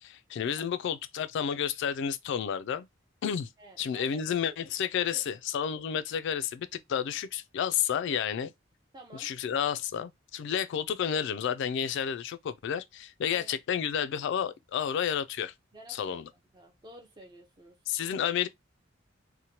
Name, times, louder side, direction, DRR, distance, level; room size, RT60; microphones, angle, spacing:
voice 1, 0.0-2.9 3.2-3.5 3.8-8.5 9.1-15.5 15.9-16.3 17.9-18.5, left 8 dB, 65° left, 0.3 m, -31 dB
voice 2, 3.6-4.6 5.1-5.2 8.9-9.3 13.3-13.6 15.7-16.2 16.5-17.8, right 2 dB, 20° right, 0.5 m, -51 dB
2.9 x 2.1 x 2.7 m
head